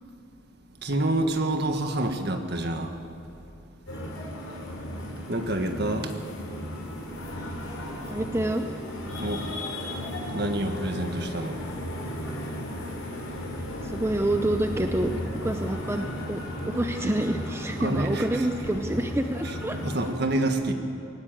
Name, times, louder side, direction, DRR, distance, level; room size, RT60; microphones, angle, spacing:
voice 1, 0.8-3.0 5.3-6.1 9.2-9.5 10.3-11.6 17.8-18.4 19.4-19.5 19.8-20.7, right 1 dB, 50° right, 6 dB, 1.7 m, -27 dB
sound 1, 3.9-20.1, equal, 90° left, 4.5 m, -35 dB
voice 2, 8.1-8.6 13.5-15.1 15.4-16.4 16.7-19.8, right 1 dB, 10° right, 6 dB, 0.6 m, -28 dB
19.5 x 18.5 x 7.8 m, 2.8 s
head